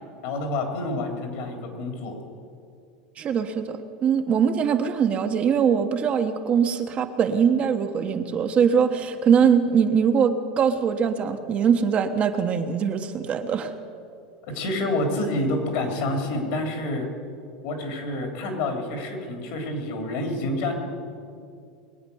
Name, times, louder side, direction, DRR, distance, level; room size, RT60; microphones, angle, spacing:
voice 1, 0.2-2.2 14.5-17.1 17.6-20.8, left 1 dB, 65° left, 3 dB, 3.6 m, -28 dB
voice 2, 3.2-13.7, right 7 dB, 35° right, 6 dB, 1.1 m, -22 dB
22.0 x 8.8 x 7.1 m, 2.4 s
supercardioid pair, 125°, 4 cm